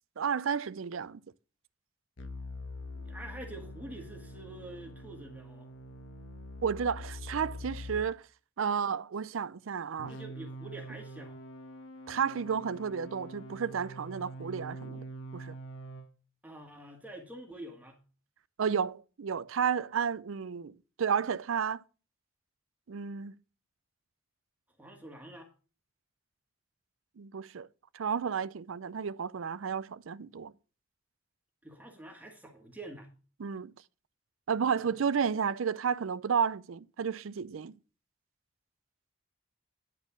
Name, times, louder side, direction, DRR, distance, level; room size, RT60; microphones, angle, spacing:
voice 1, 0.2-1.2 6.6-8.2 8.6-10.1 12.1-15.0 15.3-15.6 18.6-21.8 22.9-23.3 27.2-27.7 27.9-30.5 33.4-33.7 34.5-37.8, right 6 dB, 90° right, 0.5 m, -32 dB
sound 1, 2.2-8.1 10.0-16.1, equal, 75° left, 1.3 m, -44 dB
voice 2, 3.0-5.7 10.1-11.4 16.4-18.0 24.8-25.5 31.6-33.1 34.8-34.9, right 1 dB, 10° right, 1.7 m, -46 dB
10.5 x 4.4 x 7.0 m
head